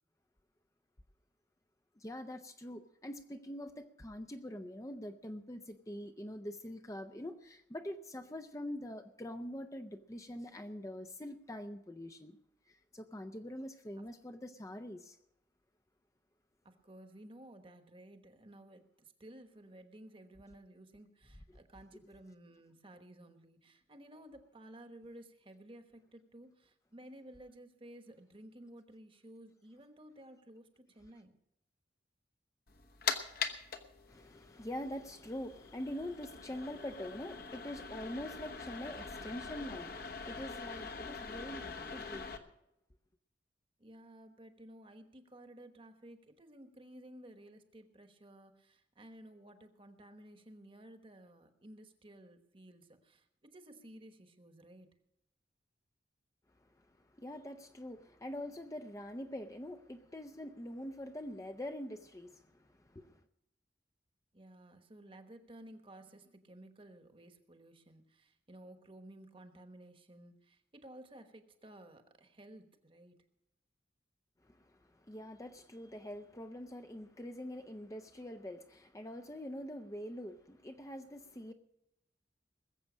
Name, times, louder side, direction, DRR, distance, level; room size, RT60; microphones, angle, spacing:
voice 1, 2.0-12.4 12.7-15.2 34.1-42.3 56.6-63.2 74.4-81.5, left 1 dB, 20° left, 0.6 m, -44 dB
voice 2, 16.6-31.3 43.8-54.9 64.3-73.2, right 1 dB, 30° right, 1.2 m, -55 dB
sound 1, 32.7-42.4, left 5 dB, 55° left, 1.2 m, -43 dB
20.5 x 7.7 x 6.2 m
head